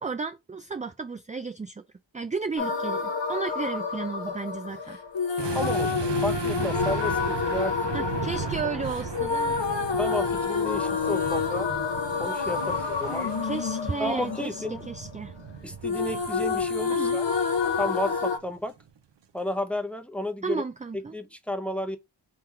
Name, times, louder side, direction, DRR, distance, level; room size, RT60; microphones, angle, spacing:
voice 1, 0.0-1.8 2.1-5.0 7.9-9.6 13.1-15.3 16.9-17.2 20.4-21.2, right 4 dB, 15° right, 0.3 m, -33 dB
sound 1, 2.6-15.5 15.8-18.4, left 5 dB, 60° left, 1.0 m, -28 dB
sound 2, 5.4-18.5 18.8-19.0, right 7 dB, 60° right, 0.7 m, -37 dB
voice 2, 5.5-8.1 10.0-11.7 12.2-13.3 14.0-14.9 15.6-17.2 17.8-18.7 19.3-20.6 20.9-22.0, left 1 dB, 5° left, 0.8 m, -32 dB
3.8 x 2.9 x 4.6 m
wide cardioid pair, 55°, 49 cm